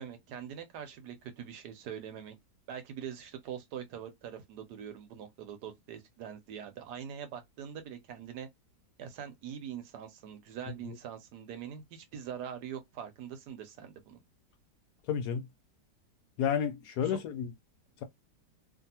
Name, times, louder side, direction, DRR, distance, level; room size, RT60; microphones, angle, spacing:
voice 1, 0.0-2.4 2.7-8.5 9.0-14.2 17.0-17.2, right 8 dB, 75° right, 1.1 m, -43 dB
voice 2, 15.1-15.5 16.4-17.5, left 8 dB, 75° left, 1.0 m, -31 dB
2.7 x 2.6 x 2.7 m
omnidirectional pair, 1.9 m